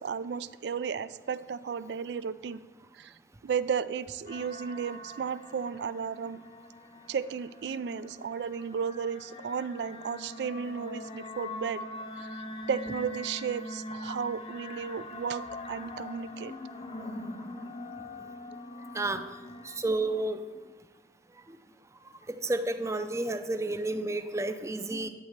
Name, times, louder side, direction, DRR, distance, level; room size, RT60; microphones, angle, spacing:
voice 1, 0.0-2.6 3.0-3.1 3.4-6.4 7.1-11.8 12.2-12.3 12.7-16.5, right 6 dB, 70° right, 16 dB, 0.3 m, -34 dB
sound 1, 4.3-19.8, left 2 dB, 35° left, 0.7 m, -43 dB
voice 2, 19.6-20.4 22.4-25.1, right 2 dB, 15° right, 8 dB, 0.5 m, -30 dB
11.0 x 4.4 x 6.6 m, 1.3 s
head